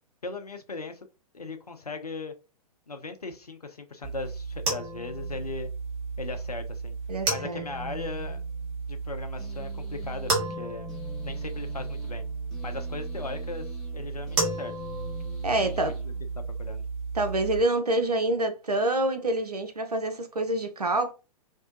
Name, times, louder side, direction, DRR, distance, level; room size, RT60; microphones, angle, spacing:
voice 1, 0.2-1.1 1.3-2.3 2.9-5.7 6.2-6.9 7.3-8.4 8.9-10.9 11.2-12.2 12.6-13.7 13.9-14.7 15.6-16.1 16.6-16.8, left 3 dB, 85° left, 0.5 m, -38 dB
sound 1, 4.0-17.6, right 3 dB, 30° right, 1.0 m, -33 dB
voice 2, 7.1-7.6 15.4-15.9 17.1-21.1, right 1 dB, 90° right, 0.5 m, -27 dB
sound 2, 9.4-16.8, left 4 dB, 5° left, 0.8 m, -48 dB
2.6 x 2.1 x 2.5 m
figure-of-eight pair, 110°, 19 cm